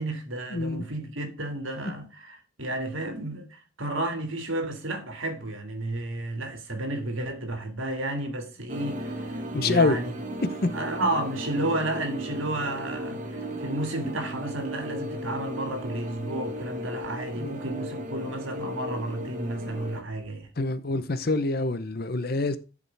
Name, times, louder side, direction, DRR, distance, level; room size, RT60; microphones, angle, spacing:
voice 1, 0.0-10.1 10.7-20.5, right 1 dB, 80° right, 2.1 m, -32 dB
voice 2, 0.5-0.9 9.5-10.0 10.4-10.7 11.0-11.1 13.5-13.6 17.4-17.6 20.6-22.6, left 3 dB, 50° left, 0.7 m, -26 dB
sound 1, 8.7-20.0, equal, 40° right, 1.3 m, -36 dB
11.0 x 5.0 x 3.3 m
head